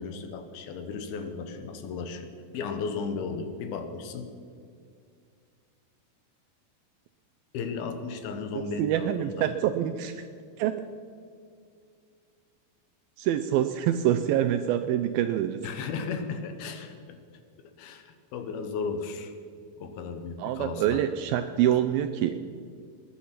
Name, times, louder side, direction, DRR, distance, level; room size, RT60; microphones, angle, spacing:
voice 1, 0.0-4.3 7.5-9.5 15.6-17.2 17.6-19.3 19.8-21.0 21.7-21.8, left 5 dB, 75° left, 8 dB, 2.9 m, -35 dB
voice 2, 8.8-10.3 10.6-10.8 13.2-15.7 20.4-22.4, right 11 dB, 80° right, 9 dB, 2.2 m, -26 dB
21.0 x 10.5 x 5.9 m, 2.2 s
omnidirectional pair, 4.7 m